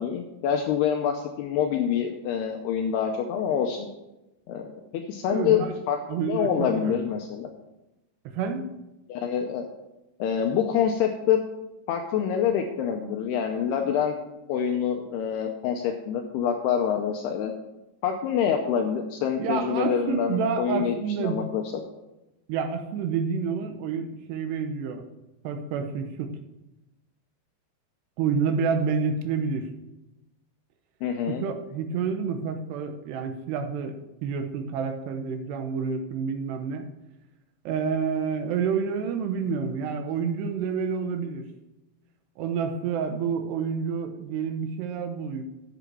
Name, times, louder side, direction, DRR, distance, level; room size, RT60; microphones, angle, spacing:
voice 1, 0.0-3.9 4.5-7.5 9.1-9.7 10.2-11.4 11.9-14.1 14.5-17.5 18.0-21.6 31.0-31.4, left 8 dB, 85° left, 4 dB, 2.4 m, -26 dB
voice 2, 5.3-5.8 6.1-7.0 8.3-8.7 19.4-21.4 22.5-25.0 25.4-26.3 28.2-29.7 31.3-36.9 37.7-41.4 42.4-45.4, right 6 dB, 75° right, 7 dB, 2.8 m, -29 dB
8.0 x 7.8 x 6.0 m, 0.95 s
omnidirectional pair, 5.3 m